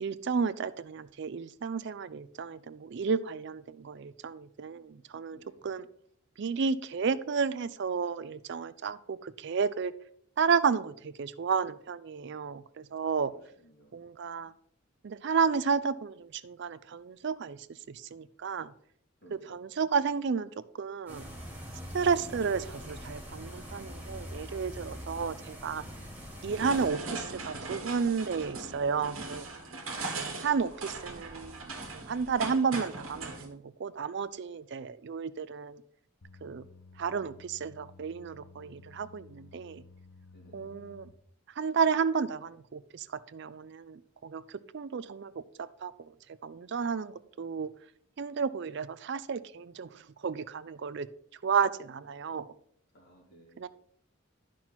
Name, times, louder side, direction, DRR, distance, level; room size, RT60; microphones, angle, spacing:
voice 1, 0.0-5.9 6.4-9.9 10.4-13.3 13.9-14.5 15.0-17.6 17.9-18.7 19.3-21.2 21.9-25.8 26.4-29.5 30.2-31.6 31.9-35.8 36.4-36.6 37.0-39.8 40.5-41.1 41.6-43.1 43.3-45.3 45.6-46.1 46.4-47.7 48.2-51.1 51.4-52.5 53.6-53.7, right 5 dB, 55° right, 15 dB, 0.4 m, -32 dB
voice 2, 5.3-5.6 13.0-14.0 19.2-19.6 29.7-30.0 40.3-40.7 52.9-53.7, right 1 dB, 50° left, -3 dB, 3.4 m, -58 dB
sound 1, 21.1-26.9, equal, 10° right, 1.6 m, -43 dB
sound 2, 26.5-33.5, right 3 dB, 70° right, 1.8 m, -39 dB
sound 3, 36.2-41.1, left 3 dB, 90° left, 0.9 m, -54 dB
10.0 x 6.0 x 4.4 m, 0.66 s
head